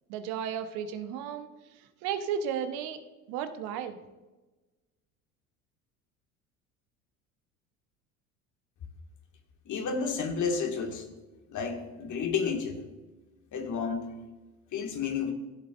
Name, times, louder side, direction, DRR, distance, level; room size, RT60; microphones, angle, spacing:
voice 1, 0.1-1.5 2.0-3.0 3.3-4.0, right 8 dB, 60° right, 8 dB, 1.1 m, -33 dB
voice 2, 9.7-11.1 11.5-12.8 13.5-14.1 14.7-15.3, left 5 dB, 45° left, 3 dB, 2.0 m, -31 dB
15.5 x 7.9 x 2.5 m, 1.1 s
hypercardioid pair, 75°, 43 cm